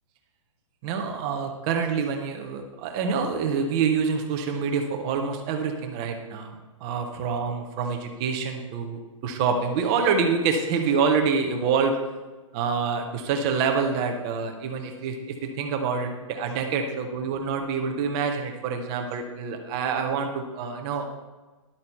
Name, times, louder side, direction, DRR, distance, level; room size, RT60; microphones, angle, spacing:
voice 1, 0.8-12.0 12.5-21.1, right 5 dB, 10° right, 4 dB, 0.3 m, -26 dB
11.0 x 8.0 x 4.4 m, 1.2 s
hypercardioid pair, 175°, 17 cm